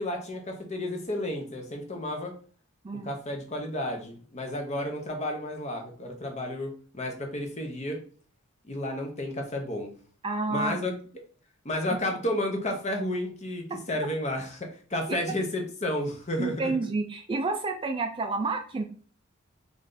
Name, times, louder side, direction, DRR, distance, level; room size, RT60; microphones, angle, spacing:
voice 1, 0.0-2.4 3.0-8.0 8.6-9.9 10.5-10.9 11.6-16.8, left 1 dB, 30° left, 3 dB, 0.8 m, -32 dB
voice 2, 10.2-10.8 16.4-18.8, right 3 dB, 25° right, 5 dB, 0.3 m, -29 dB
3.2 x 2.5 x 3.8 m, 0.41 s
head